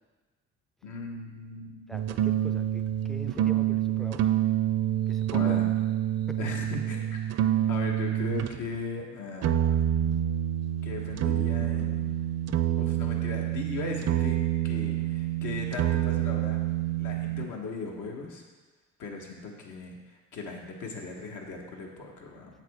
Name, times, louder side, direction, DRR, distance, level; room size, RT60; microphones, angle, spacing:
voice 1, 0.8-2.0 5.3-5.7 6.4-7.2 7.7-9.8 10.8-12.1 12.8-14.4 14.6-16.6 17.0-18.4 19.0-22.5, left 3 dB, 80° left, 0 dB, 1.3 m, -38 dB
voice 2, 1.9-4.3 5.1-5.8 6.3-6.4, equal, ahead, 7 dB, 0.4 m, -43 dB
sound 1, 1.9-8.6 9.4-17.5, right 12 dB, 60° right, 0.5 m, -27 dB
7.3 x 7.2 x 3.6 m, 1.3 s
cardioid pair, 90°, 30 cm